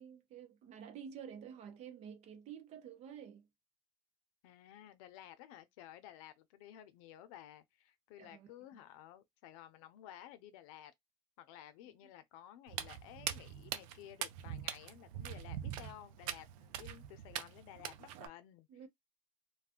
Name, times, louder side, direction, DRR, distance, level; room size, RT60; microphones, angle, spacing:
voice 1, 0.0-3.5 8.2-8.5 18.7-18.9, right 8 dB, 40° right, 0.8 m, -50 dB
voice 2, 4.4-10.9 11.4-18.7, left 12 dB, 90° left, 0.6 m, -54 dB
Walk footsteps, 12.7-18.3, right 11 dB, 85° right, 0.6 m, -43 dB
2.4 x 2.3 x 3.6 m
cardioid pair, 155°, 17 cm